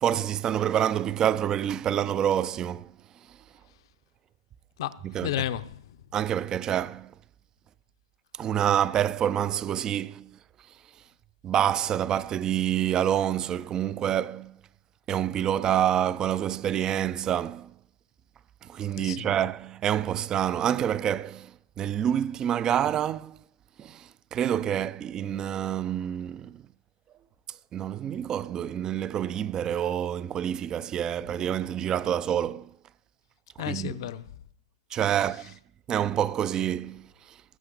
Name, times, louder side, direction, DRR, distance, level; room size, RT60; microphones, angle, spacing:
voice 1, 0.0-2.9 5.1-5.3 6.1-7.1 8.4-10.3 11.4-14.6 15.1-17.7 18.7-21.5 21.8-23.4 23.8-24.0 24.3-26.5 27.7-32.7 33.7-33.9 34.9-35.5 35.9-37.1, right 10 dB, 25° right, 0.4 m, -27 dB
voice 2, 4.8-6.0 19.0-19.3 33.6-34.3 35.1-35.5, left 12 dB, 60° left, 0.8 m, -34 dB
18.5 x 7.9 x 3.9 m
hypercardioid pair, 120°, 3 cm